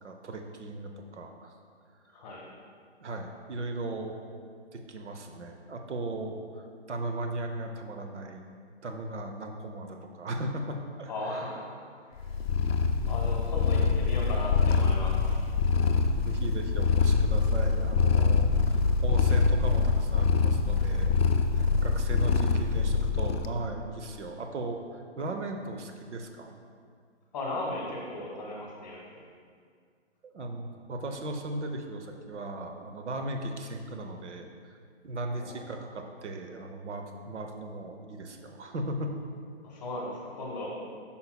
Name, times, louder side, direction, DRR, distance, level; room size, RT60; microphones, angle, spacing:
voice 1, 0.0-1.5 3.0-4.2 4.7-8.5 8.8-11.5 16.2-21.2 21.5-26.5 30.2-34.8 35.0-39.1, right 2 dB, 75° right, 4 dB, 0.8 m, -37 dB
voice 2, 11.1-11.7 12.1-12.2 13.1-15.4 27.3-29.0 35.4-35.7 39.6-40.7, left 2 dB, 15° left, -3 dB, 0.9 m, -36 dB
Purr, 12.2-23.5, left 5 dB, 60° left, 0.5 m, -25 dB
8.4 x 5.6 x 2.3 m, 2.1 s
hypercardioid pair, 165°, 35 cm